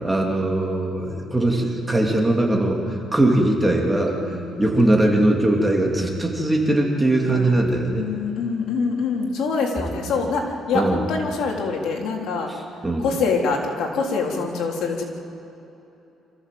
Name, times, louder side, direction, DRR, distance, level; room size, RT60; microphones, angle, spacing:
voice 1, 0.0-2.8 3.1-8.1 10.7-11.0 12.8-13.0, right 1 dB, 10° right, 0 dB, 2.8 m, -20 dB
voice 2, 4.3-4.7 7.3-7.7 7.9-12.5 13.0-15.0, left 4 dB, 75° left, 0 dB, 3.5 m, -25 dB
26.0 x 15.0 x 7.7 m, 3.0 s
cardioid pair, 130°, 0 cm